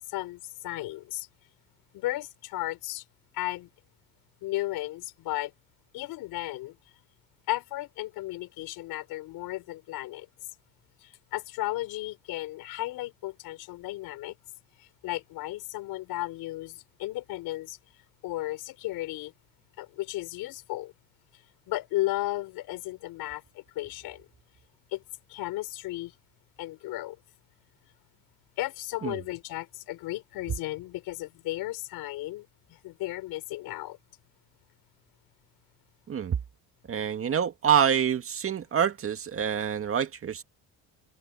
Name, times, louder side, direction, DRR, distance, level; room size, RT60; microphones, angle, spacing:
voice 1, 0.1-1.3 1.9-3.0 3.3-3.7 4.4-5.5 5.9-6.8 7.5-10.3 11.0-14.4 14.8-17.8 18.2-19.3 19.8-20.9 21.7-24.3 24.9-25.0 25.3-26.1 26.6-27.2 28.6-34.0, left 17 dB, 75° left, 5.1 m, -34 dB
voice 2, 36.9-40.4, right 8 dB, 35° right, 2.1 m, -26 dB
cardioid pair, 120°, 36 cm